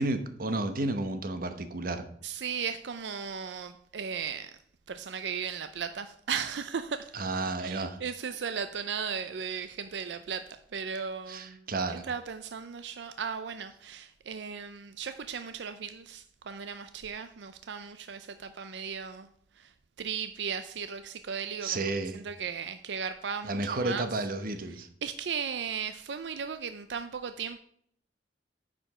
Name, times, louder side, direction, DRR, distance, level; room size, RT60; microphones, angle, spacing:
voice 1, 0.0-2.1 7.1-8.0 11.3-12.1 21.6-22.2 23.5-24.9, right 2 dB, 55° right, 1.0 m, -32 dB
voice 2, 2.2-4.6 4.9-7.2 7.6-11.6 12.1-19.3 19.6-19.7 20.0-24.1 25.0-27.6, right 6 dB, 90° right, 0.5 m, -36 dB
9.7 x 5.1 x 4.9 m
head